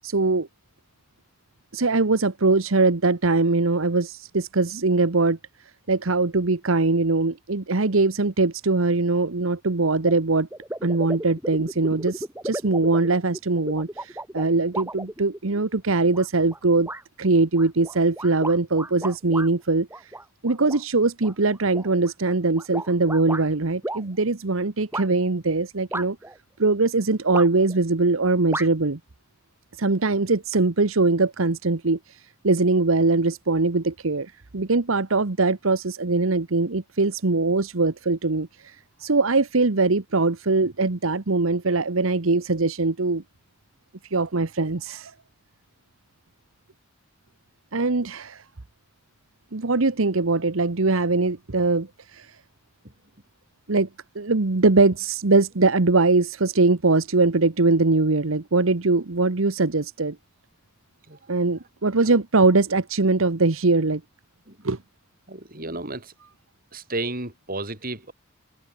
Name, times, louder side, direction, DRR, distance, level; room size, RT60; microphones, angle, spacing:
voice 1, 0.0-0.5 1.7-5.4 5.9-10.5 10.8-16.9 17.2-20.1 20.4-26.2 26.6-29.0 29.8-43.2 44.1-45.1 47.7-48.4 49.5-52.4 53.7-53.9 54.1-60.2 61.3-64.0 64.6-64.8, right 3 dB, 75° right, 1.2 m, -22 dB
sound 1, 10.0-10.1 10.5-15.6 16.1-16.6 16.9-17.0 17.5-19.5 19.9-20.8 21.2-23.5 23.8-24.0 24.9-25.1 25.9-26.4 27.3-27.8 28.5-28.7, right 1 dB, 10° right, 6.9 m, -34 dB
voice 2, 65.3-66.1 66.7-68.1, right 2 dB, 45° right, 7.0 m, -32 dB
head